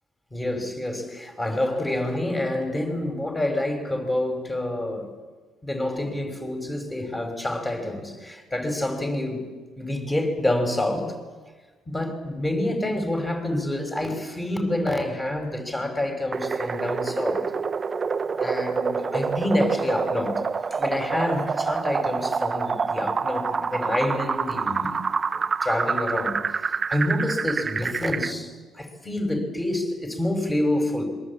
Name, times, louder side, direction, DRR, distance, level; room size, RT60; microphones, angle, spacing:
voice 1, 0.3-5.1 5.6-11.2 11.9-17.4 18.4-20.4 20.7-25.0 25.3-31.0, left 1 dB, 15° left, 5 dB, 5.4 m, -27 dB
sound 1, 16.3-28.3, right 5 dB, 30° right, 0.7 m, -27 dB
26.5 x 23.5 x 8.5 m, 1.3 s
cardioid pair, 125°, 0 cm